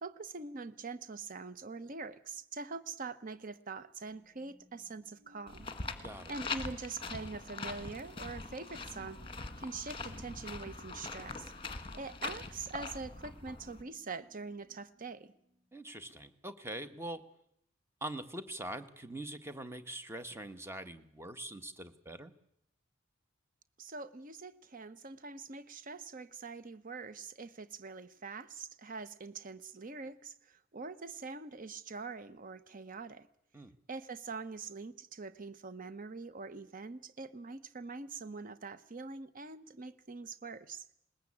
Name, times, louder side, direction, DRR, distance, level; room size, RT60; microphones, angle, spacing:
voice 1, 0.0-5.7 6.3-9.2 9.6-11.5 11.9-15.3 23.8-33.3 33.9-40.9, right 4 dB, 45° right, 13 dB, 1.0 m, -44 dB
sound 1, 4.0-16.2, equal, 75° right, 7.4 m, -67 dB
sound 2, 5.5-13.8, left 3 dB, 25° left, 1.6 m, -43 dB
voice 2, 15.7-17.2 18.0-22.3 33.5-33.7, right 1 dB, 15° right, 9 dB, 1.2 m, -43 dB
21.0 x 20.0 x 8.6 m, 0.74 s
head